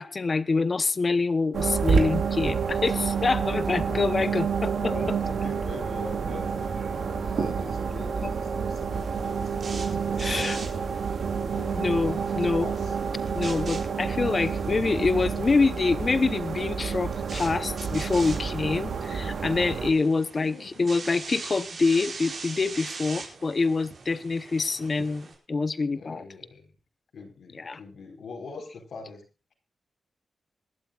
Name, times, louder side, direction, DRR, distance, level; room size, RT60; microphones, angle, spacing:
voice 1, 0.0-4.9 8.2-8.3 10.2-10.6 11.7-12.7 13.3-26.2 27.6-27.8, left 4 dB, 35° left, 15 dB, 0.8 m, -26 dB
sound 1, 1.5-19.9, right 6 dB, 80° right, 2.5 m, -29 dB
voice 2, 3.8-4.3 4.8-10.8 11.4-12.9 14.4-15.7 20.4-21.1 22.7-22.8 25.9-26.8 27.1-29.2, left 3 dB, 85° left, 4 dB, 4.6 m, -43 dB
sound 2, 8.9-25.3, right 4 dB, 60° right, 4.8 m, -43 dB
26.0 x 12.0 x 2.5 m, 0.29 s
wide cardioid pair, 155°, 0 cm